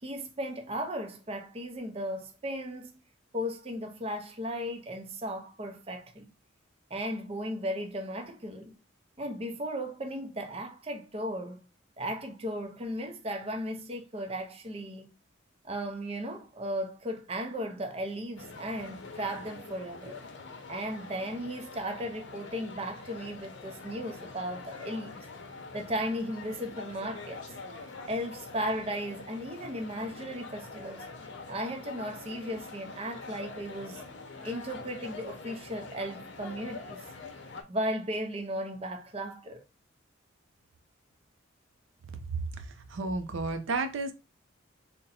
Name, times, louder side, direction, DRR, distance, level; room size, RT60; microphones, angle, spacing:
voice 1, 0.0-3.0 3.3-6.3 6.9-8.8 9.2-11.6 12.0-15.1 15.6-20.2 20.7-25.2 25.7-27.4 28.1-31.1 31.5-34.0 34.4-37.0 37.7-39.6, equal, 30° right, 0.6 m, -36 dB
sound 1, 18.4-37.6, left 3 dB, 60° left, 0.7 m, -45 dB
voice 2, 42.3-44.1, right 3 dB, 70° right, 0.5 m, -32 dB
3.8 x 2.2 x 4.1 m
head